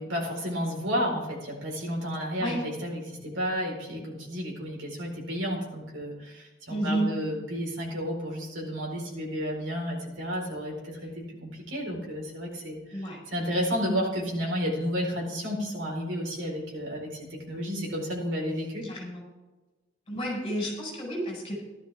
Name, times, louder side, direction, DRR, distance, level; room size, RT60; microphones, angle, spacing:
voice 1, 0.0-13.0 13.3-18.9, equal, 85° right, -1 dB, 4.3 m, -32 dB
voice 2, 6.7-7.1 12.9-13.2 18.8-19.2 20.1-21.6, right 1 dB, 25° left, -2 dB, 4.8 m, -31 dB
14.5 x 12.0 x 3.5 m, 1.2 s
head